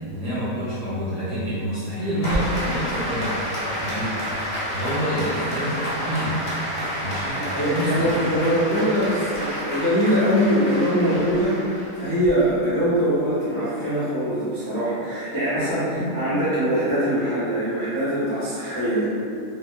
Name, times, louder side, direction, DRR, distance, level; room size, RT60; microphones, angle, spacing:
voice 1, 0.1-3.4 3.8-4.4 4.7-6.3 7.0-7.4 7.7-8.3 15.9-16.1, right 1 dB, 65° right, -10 dB, 1.0 m, -27 dB
Applause, 2.2-12.3, equal, 60° left, 0.9 m, -29 dB
voice 2, 7.3-19.1, equal, 25° right, -11 dB, 0.7 m, -23 dB
2.7 x 2.2 x 2.3 m, 2.4 s
omnidirectional pair, 1.7 m